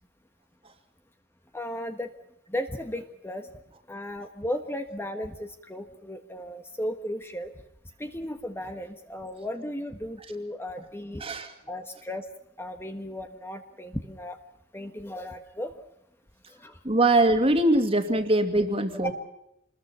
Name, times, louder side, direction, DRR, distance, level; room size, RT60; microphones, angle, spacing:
voice 1, 1.5-2.1 2.5-3.5 3.9-7.5 8.0-11.2 11.7-12.2 12.6-14.4 14.7-15.7 16.5-16.8 19.0-19.1, left 1 dB, 10° left, 6 dB, 1.4 m, -35 dB
voice 2, 11.2-11.5 16.8-19.1, right 1 dB, 30° right, 7 dB, 2.4 m, -22 dB
27.5 x 21.0 x 5.7 m, 0.82 s
head